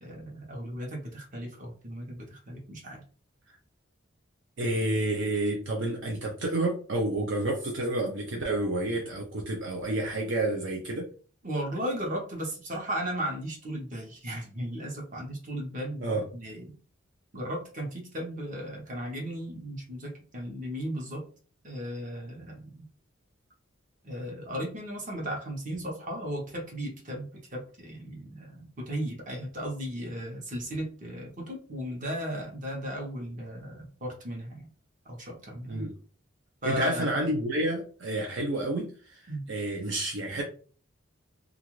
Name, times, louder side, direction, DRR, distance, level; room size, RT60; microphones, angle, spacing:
voice 1, 0.0-3.0 11.4-16.7 17.3-21.2 21.6-22.9 24.0-34.7 35.0-35.9 36.6-37.3 39.3-39.4, equal, 40° right, 0 dB, 0.9 m, -36 dB
voice 2, 4.6-11.1 16.0-16.2 35.7-35.9 36.6-40.4, right 1 dB, 65° right, -1 dB, 0.6 m, -29 dB
2.5 x 2.4 x 3.0 m, 0.40 s
head